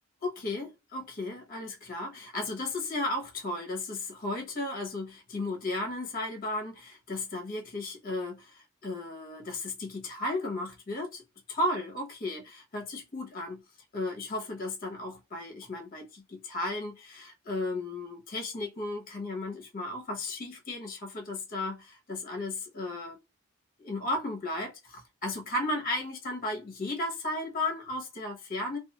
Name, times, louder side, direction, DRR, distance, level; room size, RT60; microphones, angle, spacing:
voice 1, 0.2-11.2 11.5-13.6 13.9-23.2 23.8-28.8, left 2 dB, 40° left, 1.0 m, -34 dB
2.5 x 2.5 x 2.9 m
head